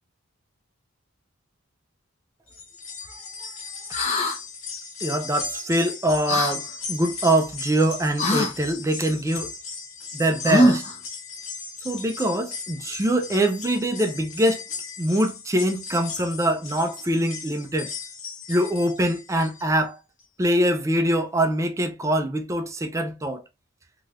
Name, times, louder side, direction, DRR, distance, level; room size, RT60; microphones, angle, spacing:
sound 1, 2.5-19.8 20.2-20.3 21.4-21.5, left 4 dB, 70° left, 1.2 m, -37 dB
sound 2, 3.9-4.4 6.3-6.5 8.2-8.5 10.4-11.0, equal, 35° left, 0.7 m, -21 dB
voice 1, 5.0-9.5 10.1-10.8 11.8-14.6 15.0-17.9 18.5-20.0 20.4-23.4, right 1 dB, 15° right, 0.3 m, -23 dB
3.2 x 2.8 x 2.4 m
head